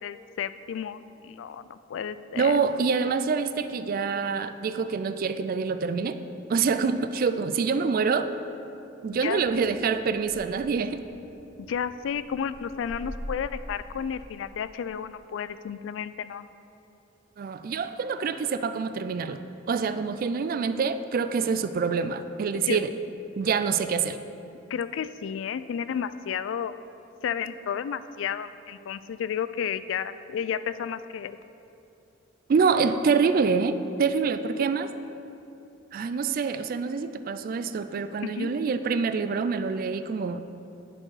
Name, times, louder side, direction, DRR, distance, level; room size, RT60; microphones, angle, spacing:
voice 1, 0.0-1.0 1.2-2.6 9.2-9.4 11.6-16.4 22.7-22.8 24.7-26.8 27.2-31.4 38.2-38.5, left 8 dB, 75° left, 15 dB, 0.3 m, -32 dB
voice 2, 2.3-6.2 6.5-8.3 9.0-11.0 17.4-22.9 23.4-24.2 32.5-34.9 35.9-40.4, right 5 dB, 50° right, 11 dB, 0.3 m, -26 dB
sound 1, 9.2-14.3, equal, ahead, 0.7 m, -43 dB
9.8 x 4.4 x 4.8 m, 2.8 s
head